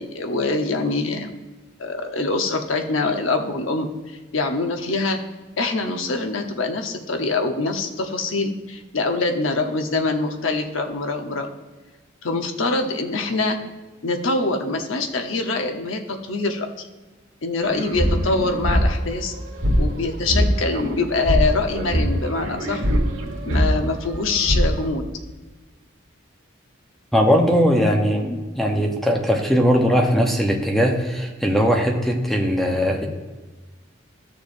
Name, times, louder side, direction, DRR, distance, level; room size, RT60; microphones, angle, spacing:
voice 1, 0.0-1.3 1.8-5.2 5.6-11.5 12.2-13.6 14.0-16.9 17.4-19.3 19.8-22.9 23.4-25.1, left 3 dB, 90° left, 4 dB, 0.9 m, -24 dB
sound 1, 17.6-19.9 20.2-24.8, equal, 85° right, 1.4 m, -22 dB
voice 2, 27.1-33.1, equal, ahead, 1 dB, 0.8 m, -19 dB
13.0 x 6.8 x 2.6 m, 1.3 s
head